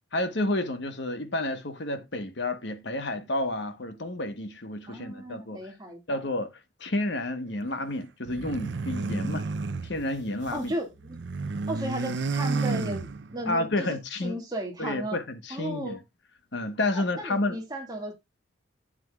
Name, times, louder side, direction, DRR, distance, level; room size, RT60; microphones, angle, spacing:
voice 1, 0.1-5.6 6.1-6.5 6.8-9.5 9.8-10.7 13.5-14.4 14.8-16.0 16.5-17.6, left 1 dB, 60° left, 1.2 m, -30 dB
voice 2, 4.9-6.2 10.5-11.2 11.7-15.2 15.5-16.0 16.9-18.1, right 1 dB, 20° right, 2.0 m, -35 dB
sound 1, 8.3-10.7 11.0-13.5, right 3 dB, 65° right, 0.6 m, -31 dB
11.0 x 8.8 x 2.3 m
head